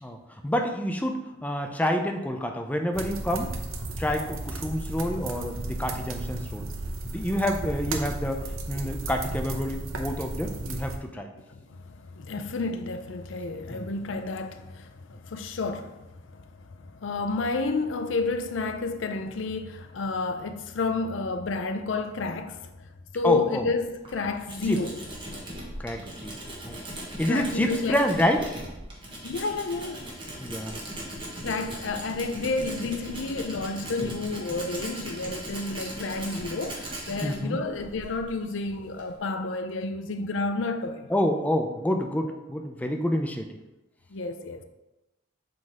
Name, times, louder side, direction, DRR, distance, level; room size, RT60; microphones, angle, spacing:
voice 1, 0.0-3.5 4.0-6.7 7.0-8.4 8.7-11.3 13.7-13.9 23.2-23.6 24.7-24.8 25.8-26.4 26.7-26.8 27.2-28.4 30.4-30.8 34.0-34.1 37.2-37.6 41.1-43.5, equal, 10° left, 0.5 m, -28 dB
sound 1, 2.9-11.0, right 2 dB, 90° right, 0.8 m, -34 dB
voice 2, 11.5-22.7 23.1-25.0 27.3-28.0 29.2-30.1 31.4-41.1 44.1-44.6, left 3 dB, 65° left, 0.5 m, -31 dB
Tools, 23.8-39.2, right 1 dB, 25° right, 1.3 m, -39 dB
7.7 x 3.9 x 3.6 m
head